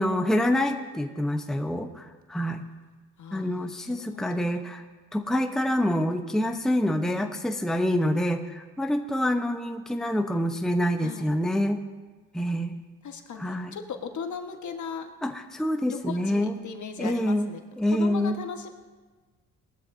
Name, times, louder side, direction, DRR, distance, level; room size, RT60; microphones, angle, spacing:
voice 1, 0.0-2.6 3.3-4.8 5.1-11.8 12.3-12.8 13.4-13.7 15.2-16.5 17.0-17.5 17.8-18.4, left 1 dB, ahead, 5 dB, 0.9 m, -26 dB
voice 2, 3.2-4.4 6.9-7.0 11.0-11.3 13.0-15.1 15.9-17.6 17.9-18.7, left 6 dB, 50° left, 5 dB, 1.5 m, -38 dB
19.0 x 13.5 x 2.7 m, 1.3 s
supercardioid pair, 65°, 36 cm